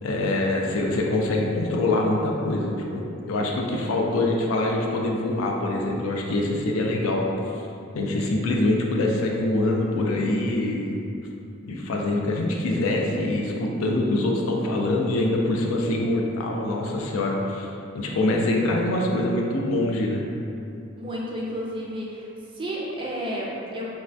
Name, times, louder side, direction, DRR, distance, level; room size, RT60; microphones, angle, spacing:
voice 1, 0.0-7.3 7.9-11.0 11.6-17.7 17.9-20.2, left 2 dB, 80° left, 0 dB, 0.4 m, -24 dB
voice 2, 21.0-22.3 22.5-23.9, equal, 25° right, -4 dB, 0.3 m, -31 dB
3.2 x 2.1 x 2.6 m, 2.7 s
head